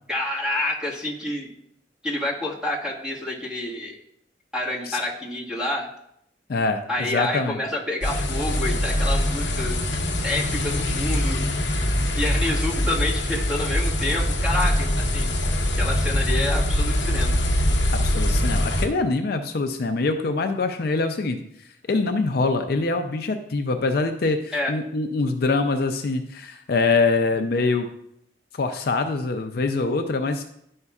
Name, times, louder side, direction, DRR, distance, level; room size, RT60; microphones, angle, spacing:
voice 1, 0.1-1.5 2.0-3.9 4.5-5.9 6.9-9.9 10.2-11.5 12.1-15.3 15.8-17.3 24.5-24.7, left 1 dB, 5° right, -5 dB, 1.6 m, -28 dB
voice 2, 6.5-7.6 17.9-21.4 21.9-27.9 28.5-30.4, left 3 dB, 55° left, 6 dB, 0.5 m, -24 dB
sound 1, 8.0-18.9, left 1 dB, 70° left, 0.9 m, -23 dB
10.5 x 5.4 x 2.4 m, 0.74 s
head